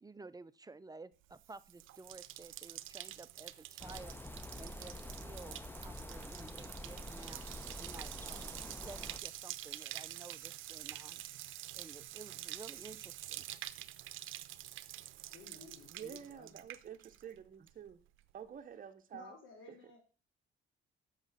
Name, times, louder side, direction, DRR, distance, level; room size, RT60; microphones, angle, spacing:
voice 1, 0.0-4.2 4.6-7.4 7.8-11.4 11.7-13.5, right 3 dB, 20° right, 0.5 m, -53 dB
Bathtub (filling or washing), 1.3-17.4 17.7-18.2, right 14 dB, 80° right, 0.6 m, -47 dB
sound 1, 3.8-9.2, left 1 dB, 10° left, 0.8 m, -47 dB
voice 2, 15.3-16.6 19.1-20.0, left 4 dB, 75° left, 3.8 m, -55 dB
voice 3, 15.9-18.0 18.3-19.4 19.7-19.8, right 8 dB, 45° right, 0.9 m, -49 dB
7.2 x 6.6 x 6.8 m
cardioid pair, 90°, 20 cm